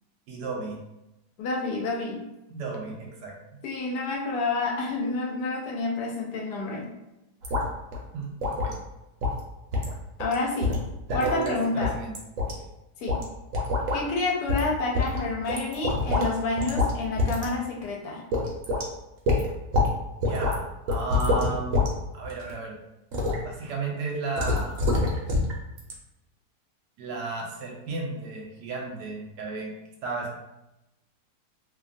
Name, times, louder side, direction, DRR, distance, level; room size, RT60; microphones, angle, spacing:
voice 1, 0.3-0.8 2.5-3.3 8.1-8.8 11.1-12.1 20.2-21.8 22.1-22.7 23.4-24.8 27.0-29.7 30.0-30.3, right 3 dB, 90° right, -1 dB, 1.2 m, -33 dB
voice 2, 1.4-2.2 3.6-6.9 10.2-10.7 11.1-11.9 13.0-13.2 13.9-18.2, left 3 dB, 85° left, 0 dB, 1.2 m, -29 dB
sound 1, 7.4-7.7 7.9-8.0 8.4-8.8 9.2-9.4 9.7-9.9 10.2-10.3 10.6-11.5 11.8-12.5 13.1-13.2 13.5-14.0 14.5-14.7 14.9-16.3 16.6-16.9 17.2-17.5 17.8-17.9 18.3-18.9 19.3-19.9 20.2-20.5 20.9-21.9 22.2-22.5 23.1-23.4 24.4-25.5 25.8-25.9, left 2 dB, 65° right, 0.9 m, -25 dB
3.0 x 2.2 x 2.5 m, 0.94 s
omnidirectional pair, 1.8 m